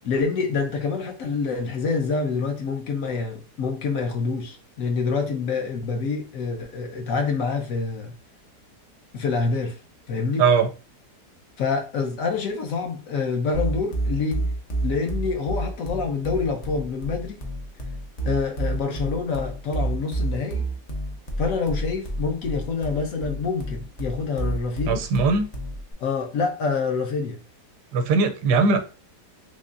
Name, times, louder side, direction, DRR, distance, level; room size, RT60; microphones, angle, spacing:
voice 1, 0.0-8.1 9.1-9.8 10.1-10.4 11.6-14.5 14.8-17.4 18.2-20.6 21.4-25.1 26.0-27.4, left 4 dB, 65° left, 1.0 m, -26 dB
voice 2, 10.4-10.7 24.9-25.5 27.9-28.8, right 4 dB, 80° right, 1.2 m, -20 dB
sound 1, 13.5-25.9, right 1 dB, 50° left, 0.5 m, -29 dB
3.7 x 3.1 x 2.5 m
omnidirectional pair, 1.8 m